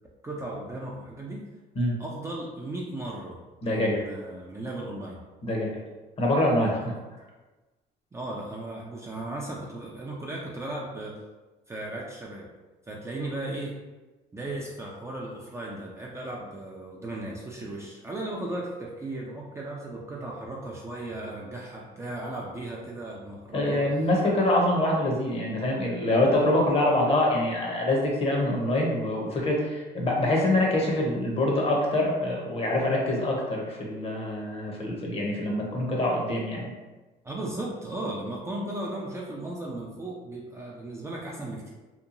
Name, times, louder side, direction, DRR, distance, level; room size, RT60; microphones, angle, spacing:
voice 1, 0.2-1.4 2.0-3.4 3.6-5.2 8.1-11.2 11.7-12.4 12.9-13.7 14.3-23.9 37.2-41.7, right 1 dB, 15° right, -3 dB, 0.4 m, -36 dB
voice 2, 3.6-4.0 5.4-5.7 6.2-6.9 23.5-36.7, left 1 dB, 35° left, -1 dB, 0.7 m, -25 dB
2.8 x 2.2 x 2.5 m, 1.2 s
cardioid pair, 110°, 17 cm